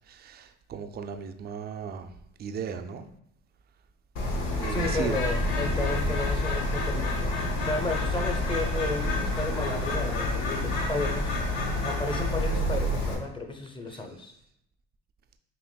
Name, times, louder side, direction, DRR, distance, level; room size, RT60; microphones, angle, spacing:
voice 1, 0.1-2.1 2.4-3.1 4.5-5.2, right 7 dB, 30° right, 7 dB, 0.4 m, -36 dB
Bird, 4.2-13.2, left 2 dB, 90° left, 0.8 m, -28 dB
voice 2, 4.7-7.3 7.7-11.3 11.8-14.3, left 2 dB, 15° left, 2 dB, 0.7 m, -33 dB
5.7 x 2.5 x 2.2 m, 0.75 s
supercardioid pair, 75°, 35 cm